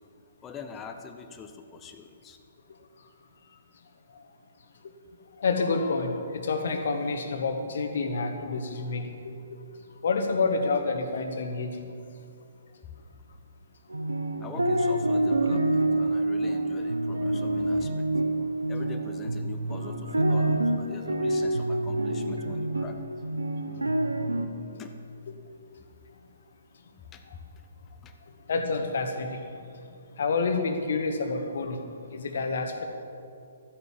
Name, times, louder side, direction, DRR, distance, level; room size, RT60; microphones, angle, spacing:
voice 1, 0.4-2.4 12.8-13.2 14.4-18.0 18.7-23.0 24.8-25.0 27.1-27.7 28.0-28.1, left 5 dB, 15° left, 6 dB, 0.8 m, -44 dB
voice 2, 5.4-9.1 9.5-9.6 10.0-11.7 28.5-29.3 30.2-31.8 32.1-32.8, left 4 dB, 50° left, 6 dB, 1.5 m, -28 dB
sound 1, 13.9-24.5, right 1 dB, 75° right, 1.0 m, -27 dB
13.0 x 9.5 x 7.5 m, 2.5 s
figure-of-eight pair, 125°, 0 cm